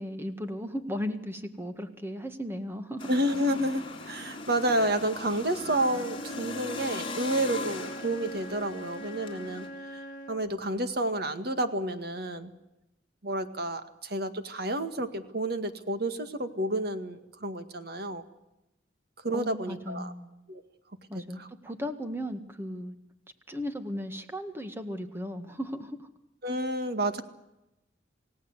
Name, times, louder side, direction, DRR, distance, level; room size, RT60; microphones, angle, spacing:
voice 1, 0.0-3.1 19.3-20.3 21.1-23.0 23.5-26.1, equal, 10° right, 8 dB, 1.8 m, -36 dB
sound 1, 3.0-9.7, left 3 dB, 30° left, 3.7 m, -40 dB
voice 2, 3.1-10.0 10.3-12.5 13.2-18.2 19.2-20.1 20.5-20.6 21.1-21.5 26.4-27.2, right 1 dB, 55° right, 9 dB, 2.0 m, -30 dB
Wind instrument woodwind instrument, 5.5-10.5, equal, 45° left, 4.8 m, -42 dB
28.0 x 17.5 x 8.1 m, 0.93 s
head